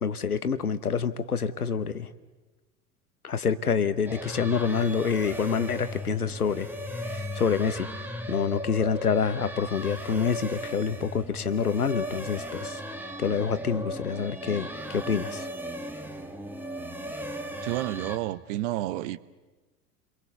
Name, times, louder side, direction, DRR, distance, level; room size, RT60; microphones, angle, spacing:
voice 1, 0.0-2.1 3.2-6.7 7.1-7.9 8.3-12.8 13.2-15.5, left 6 dB, 85° left, 14 dB, 1.0 m, -27 dB
sound 1, 4.1-18.2, equal, 5° right, 1.8 m, -36 dB
voice 2, 17.6-19.2, right 15 dB, 55° right, 18 dB, 1.0 m, -30 dB
29.5 x 22.5 x 6.9 m, 1.2 s
figure-of-eight pair, 75°, 43 cm